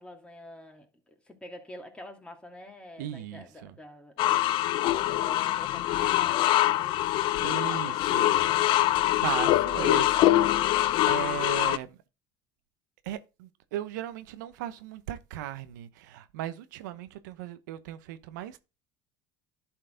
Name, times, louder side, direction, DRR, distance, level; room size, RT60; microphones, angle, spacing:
voice 1, 0.0-8.8, left 1 dB, 10° left, 2.5 m, -48 dB
voice 2, 3.0-3.7 7.4-8.4 9.2-12.0 13.1-18.6, right 12 dB, 85° right, 0.8 m, -37 dB
sound 1, 4.2-11.8, left 14 dB, 60° left, 0.6 m, -24 dB
11.0 x 4.6 x 3.8 m
supercardioid pair, 100°, 10 cm